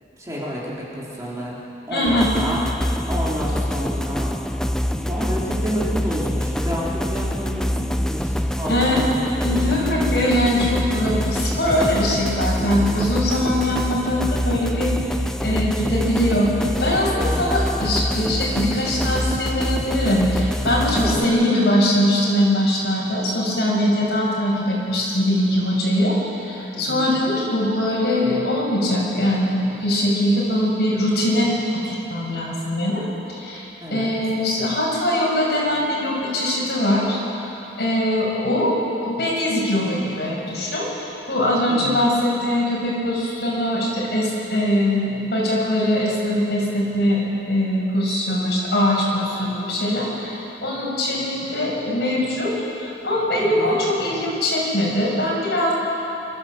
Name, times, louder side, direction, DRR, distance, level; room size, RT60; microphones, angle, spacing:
voice 1, 0.2-1.6 1.9-4.3 5.0-10.0 10.8-11.1 12.6-12.9 13.5-13.7 17.2-17.4 21.0-21.3 23.9-24.1 26.7-27.2 33.8-34.2 41.6-42.1 53.3-53.8, equal, 15° right, -6 dB, 3.4 m, -30 dB
voice 2, 1.9-2.3 8.7-9.0 9.4-15.2 15.4-33.0 33.3-37.2 37.8-55.7, left 1 dB, 60° left, -4 dB, 6.4 m, -22 dB
sound 1, 2.1-21.3, equal, 5° left, 0.5 m, -25 dB
28.0 x 13.5 x 7.6 m, 2.9 s
head